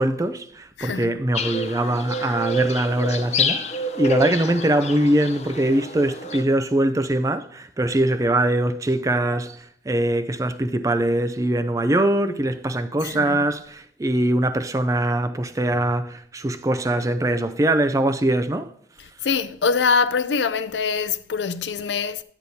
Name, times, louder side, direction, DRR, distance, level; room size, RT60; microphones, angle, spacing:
voice 1, 0.0-3.6 4.0-18.7, right 1 dB, 20° right, 0.4 m, -22 dB
voice 2, 0.8-1.2 13.0-13.4 19.0-22.2, left 5 dB, 85° left, 0.5 m, -24 dB
sound 1, 1.3-6.4, left 1 dB, 40° left, 0.6 m, -28 dB
11.5 x 7.9 x 2.8 m
head